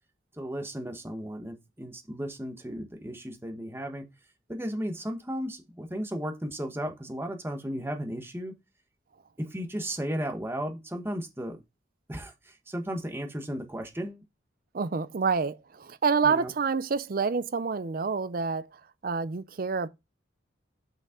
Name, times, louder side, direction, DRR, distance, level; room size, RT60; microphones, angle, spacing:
voice 1, 0.3-4.0 4.5-8.5 9.4-11.6 12.1-14.2 16.2-16.5, equal, 15° right, 1.1 m, -35 dB
voice 2, 14.7-19.9, right 5 dB, 50° right, 0.5 m, -28 dB
6.0 x 5.4 x 3.6 m
head